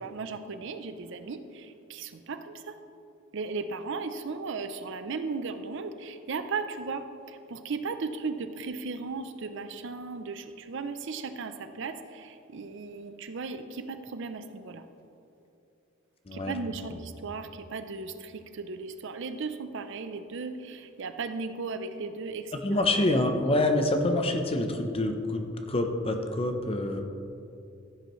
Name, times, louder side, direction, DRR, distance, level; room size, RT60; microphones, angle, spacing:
voice 1, 0.0-2.8 3.3-14.8 16.3-22.8, right 4 dB, 60° right, 9 dB, 0.5 m, -36 dB
voice 2, 22.6-27.0, left 1 dB, 30° left, 5 dB, 0.7 m, -26 dB
15.0 x 8.1 x 3.1 m, 2.8 s
head